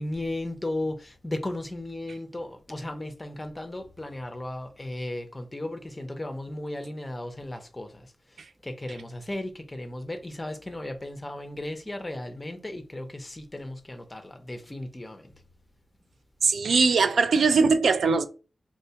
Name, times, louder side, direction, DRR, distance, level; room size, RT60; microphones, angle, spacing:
voice 1, 0.0-8.1 8.4-15.3, left 1 dB, 15° left, 0.5 m, -35 dB
voice 2, 16.4-18.3, right 4 dB, 75° right, 0.3 m, -21 dB
3.6 x 2.2 x 2.7 m
wide cardioid pair, 140°, 0 cm